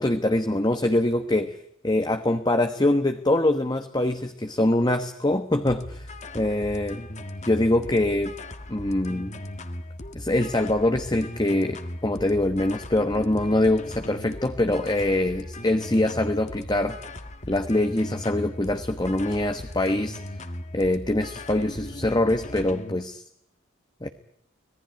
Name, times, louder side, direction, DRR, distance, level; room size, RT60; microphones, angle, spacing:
voice 1, 0.0-1.5 1.8-6.1 6.3-7.0 7.4-8.3 8.7-9.3 10.1-17.0 17.5-20.2 20.7-23.2 24.0-24.1, left 1 dB, 20° left, 7 dB, 1.1 m, -24 dB
sound 1, 5.7-23.0, left 1 dB, 35° left, 1.6 m, -38 dB
25.5 x 19.0 x 9.5 m, 0.75 s
head